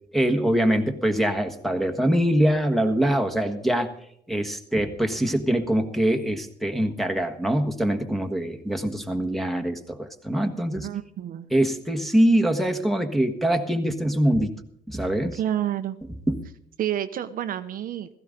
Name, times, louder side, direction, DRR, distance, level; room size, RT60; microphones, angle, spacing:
voice 1, 0.1-3.9 4.3-10.9 11.5-14.5 14.9-15.4 16.3-16.4, right 1 dB, ahead, 5 dB, 1.4 m, -23 dB
voice 2, 10.8-11.5 15.4-16.0 16.8-18.1, right 11 dB, 55° right, 9 dB, 0.8 m, -29 dB
16.0 x 14.5 x 3.9 m, 0.69 s
cardioid pair, 110°, 17 cm